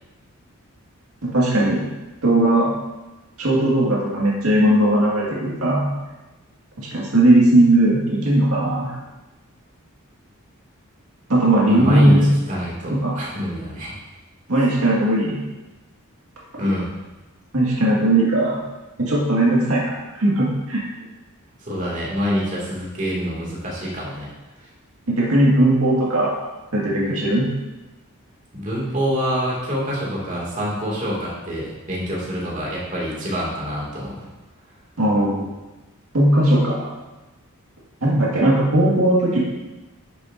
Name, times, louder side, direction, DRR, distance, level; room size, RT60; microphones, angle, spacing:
voice 1, 1.3-1.9 2.2-2.7 3.4-5.9 6.8-8.9 11.3-12.3 12.9-13.1 14.5-15.4 17.5-18.6 19.0-19.8 20.1-20.8 25.1-26.3 26.7-27.5 35.0-35.5 36.1-36.9 38.0-39.4, right 1 dB, 80° right, -5 dB, 1.9 m, -18 dB
voice 2, 11.7-12.2 12.5-13.9 16.6-16.9 21.6-24.3 24.6-24.7 28.5-34.3, equal, 35° right, -5 dB, 2.3 m, -26 dB
11.0 x 7.0 x 2.6 m, 1.1 s
head